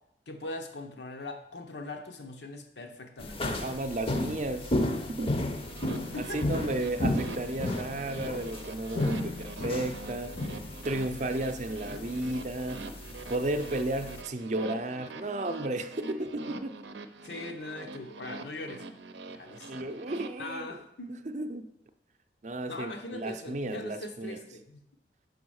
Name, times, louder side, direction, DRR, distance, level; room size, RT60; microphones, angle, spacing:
voice 1, 0.3-3.6 6.1-6.4 17.2-18.8 19.3-19.9 20.4-21.2 22.7-24.8, left 2 dB, 80° left, 0.9 m, -41 dB
sound 1, 3.2-14.2, left 1 dB, 30° left, 0.6 m, -34 dB
voice 2, 3.6-4.7 5.1-5.4 6.2-10.4 10.8-12.9 13.3-16.8 19.7-20.8 21.1-21.7 22.4-24.4, right 1 dB, 40° right, 0.5 m, -33 dB
sound 2, 5.5-20.3, right 3 dB, 85° right, 0.6 m, -44 dB
6.2 x 5.0 x 6.3 m
head